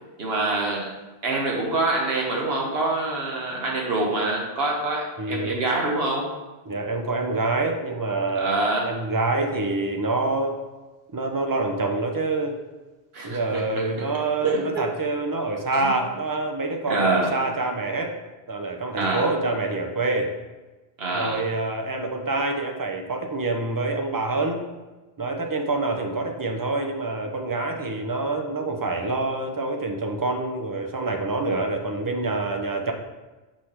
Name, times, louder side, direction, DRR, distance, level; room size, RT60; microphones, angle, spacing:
voice 1, 0.2-0.9 1.2-6.3 8.3-8.9 13.1-13.9 14.4-14.9 15.8-15.9 16.9-17.3 19.0-19.3 21.0-21.4, right 2 dB, 75° right, -1 dB, 1.3 m, -25 dB
voice 2, 5.2-5.6 6.6-10.6 11.1-12.6 13.2-18.1 18.5-20.3 21.1-24.6 25.2-32.9, right 2 dB, 25° right, 3 dB, 0.6 m, -26 dB
6.2 x 3.3 x 5.7 m, 1.2 s
omnidirectional pair, 1.0 m